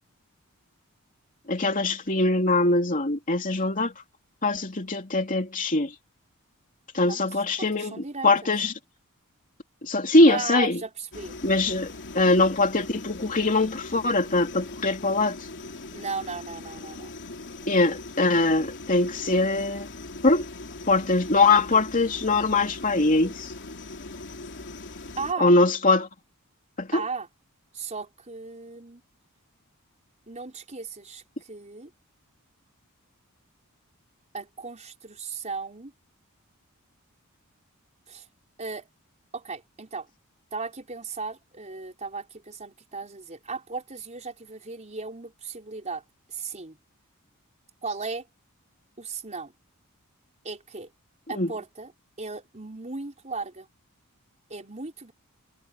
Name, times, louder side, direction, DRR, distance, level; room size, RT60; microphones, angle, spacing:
voice 1, 1.5-3.9 4.4-5.9 6.9-7.9 8.2-8.7 9.8-10.8 11.4-15.4 17.7-19.9 20.2-20.5 20.9-23.5 25.4-26.1 26.8-27.0 51.3-51.5, left 2 dB, 40° left, 3.2 m, -22 dB
voice 2, 7.6-8.5 10.3-11.3 15.9-17.1 17.6-17.7 25.2-25.5 26.9-27.3 27.7-29.0 30.3-31.9 34.3-35.9 38.1-38.3 38.6-38.9 39.3-40.1 40.5-46.0 46.3-46.8 47.8-48.3 49.0-49.5 50.4-50.9 51.3-51.9 52.2-53.7 54.5-55.1, right 4 dB, 30° right, 4.9 m, -36 dB
sound 1, 11.1-25.3, left 2 dB, 55° left, 3.3 m, -40 dB
head